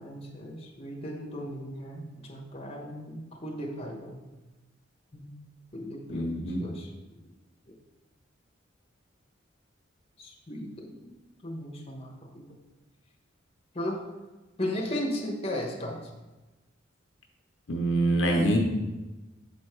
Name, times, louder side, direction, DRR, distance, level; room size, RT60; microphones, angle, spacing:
voice 1, 0.0-4.3 5.1-5.3 5.7-6.9 10.2-11.1 11.4-12.4 13.7-14.0 14.6-16.0, left 1 dB, 30° left, -1 dB, 1.1 m, -36 dB
voice 2, 6.1-6.6 17.7-18.6, right 1 dB, 75° left, 1 dB, 0.8 m, -25 dB
7.4 x 3.7 x 4.5 m, 1.1 s
head